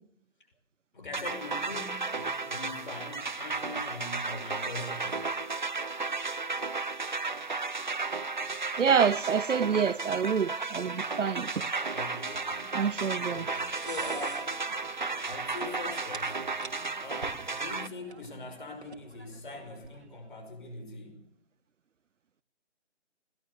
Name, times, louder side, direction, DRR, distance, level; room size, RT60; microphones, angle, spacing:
voice 1, 0.9-5.3 11.9-12.7 13.3-14.5 15.2-16.4 17.0-21.2, left 3 dB, 45° left, 7 dB, 5.7 m, -42 dB
sound 1, 1.1-17.9, right 4 dB, 40° right, 0.8 m, -34 dB
voice 2, 8.8-11.7 12.7-13.5, right 6 dB, 90° right, 16 dB, 0.7 m, -27 dB
sound 2, 12.1-20.4, right 3 dB, 65° right, 2.9 m, -50 dB
21.0 x 19.0 x 6.9 m, 0.69 s
figure-of-eight pair, 170°, 36 cm